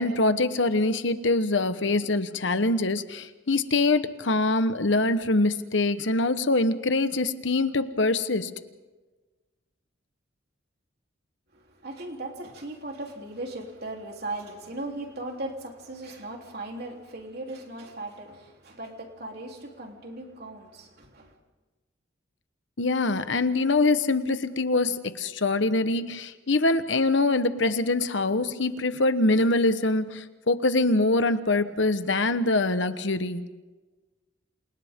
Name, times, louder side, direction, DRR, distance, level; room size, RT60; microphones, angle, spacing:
voice 1, 0.0-8.5 22.8-33.4, left 2 dB, 65° left, 10 dB, 1.2 m, -24 dB
voice 2, 11.5-21.3, right 2 dB, 55° right, 1 dB, 3.5 m, -38 dB
29.5 x 28.0 x 3.8 m, 1.2 s
head